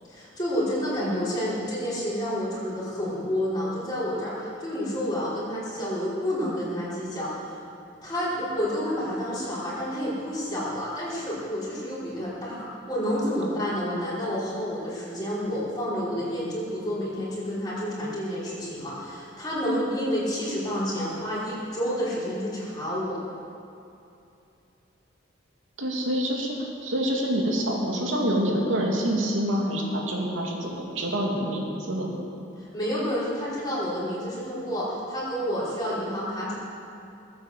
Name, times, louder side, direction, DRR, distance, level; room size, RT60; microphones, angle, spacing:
voice 1, 0.1-7.6 8.0-23.2 32.6-36.5, equal, 20° left, -9 dB, 5.0 m, -29 dB
voice 2, 25.8-32.1, equal, 85° right, -1 dB, 2.8 m, -26 dB
19.5 x 9.0 x 7.7 m, 2.7 s
head